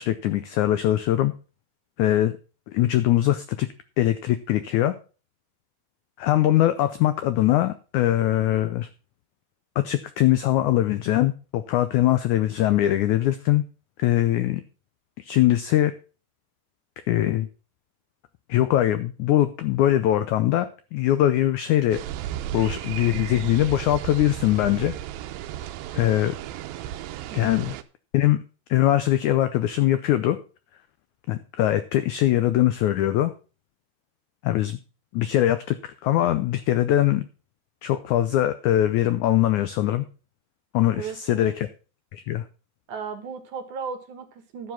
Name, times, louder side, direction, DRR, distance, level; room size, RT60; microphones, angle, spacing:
voice 1, 0.0-1.3 2.0-2.3 2.7-3.7 4.0-4.9 6.2-8.9 9.8-13.6 14.0-14.6 15.2-15.9 17.1-17.5 18.5-22.0 22.5-24.9 25.9-26.3 27.3-27.7 28.1-28.4 28.7-30.4 31.3-33.3 34.4-34.8 35.1-37.2 37.8-40.0 40.7-41.7 42.1-42.4, left 13 dB, 85° left, 12 dB, 1.7 m, -22 dB
sound 1, 21.9-27.8, right 12 dB, 80° right, 2.4 m, -34 dB
voice 2, 27.3-27.8 41.0-41.6 42.9-44.7, right 6 dB, 65° right, 8 dB, 2.5 m, -36 dB
11.0 x 7.2 x 5.8 m, 0.35 s
omnidirectional pair, 4.3 m